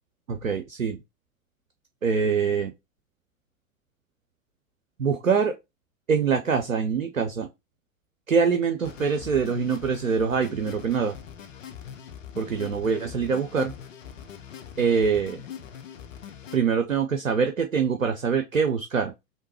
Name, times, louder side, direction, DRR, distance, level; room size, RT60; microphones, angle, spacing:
voice 1, 0.3-1.0 2.0-2.7 5.0-5.5 6.1-7.5 8.3-11.1 12.4-13.7 14.8-15.4 16.5-19.1, right 6 dB, 85° right, 0.7 m, -24 dB
sound 1, 8.8-16.6, left 8 dB, 70° left, 0.9 m, -42 dB
3.7 x 3.0 x 4.2 m
figure-of-eight pair, 90°, 40 cm